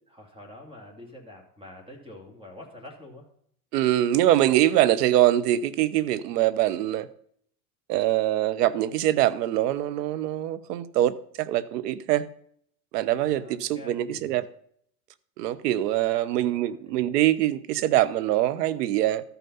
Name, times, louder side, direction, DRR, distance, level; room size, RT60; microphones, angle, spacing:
voice 1, 0.1-3.3 13.2-14.5 15.8-17.2, left 1 dB, 10° right, 2.4 m, -47 dB
voice 2, 3.7-7.1 7.9-12.3 12.9-14.4 15.4-19.2, right 13 dB, 80° right, 0.9 m, -23 dB
13.0 x 5.8 x 5.4 m
supercardioid pair, 125°, 47 cm